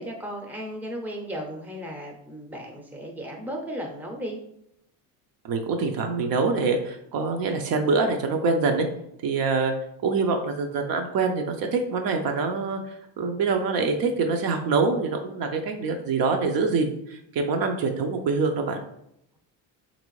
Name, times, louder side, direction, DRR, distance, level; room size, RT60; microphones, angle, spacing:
voice 1, 0.0-4.4, equal, 5° right, 1 dB, 0.6 m, -35 dB
voice 2, 5.4-8.9 9.2-9.7 10.0-12.8 13.2-18.8, right 4 dB, 50° right, 4 dB, 0.6 m, -25 dB
3.2 x 2.6 x 3.1 m, 0.77 s
supercardioid pair, 80°, 44 cm